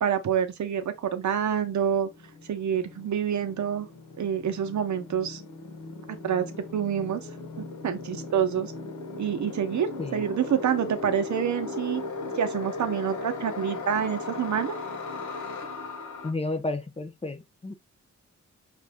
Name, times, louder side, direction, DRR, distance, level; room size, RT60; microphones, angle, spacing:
voice 1, 0.0-2.1 2.5-3.9 4.2-5.4 6.2-6.5 6.7-7.2 7.8-8.7 9.2-12.0 12.4-14.7, right 8 dB, 75° right, 0.8 m, -27 dB
sound 1, 1.3-16.3, left 3 dB, 85° left, 1.2 m, -38 dB
voice 2, 16.2-17.7, left 2 dB, 20° left, 0.6 m, -32 dB
5.9 x 2.5 x 3.5 m
wide cardioid pair, 150°, 29 cm